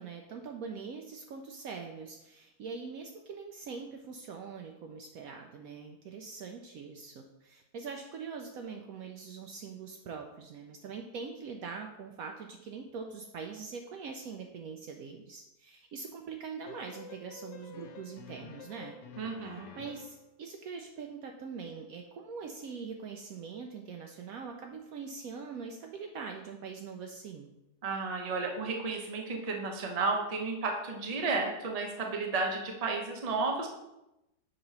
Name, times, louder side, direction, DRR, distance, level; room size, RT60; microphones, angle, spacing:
voice 1, 0.0-19.0 19.5-27.5, right 5 dB, 70° right, 3 dB, 0.9 m, -43 dB
sound 1, 16.7-20.3, left 5 dB, 75° left, 1.3 m, -49 dB
voice 2, 19.2-19.7 27.8-33.7, right 3 dB, 35° right, 2 dB, 0.6 m, -32 dB
6.7 x 3.0 x 5.4 m, 0.91 s
omnidirectional pair, 1.8 m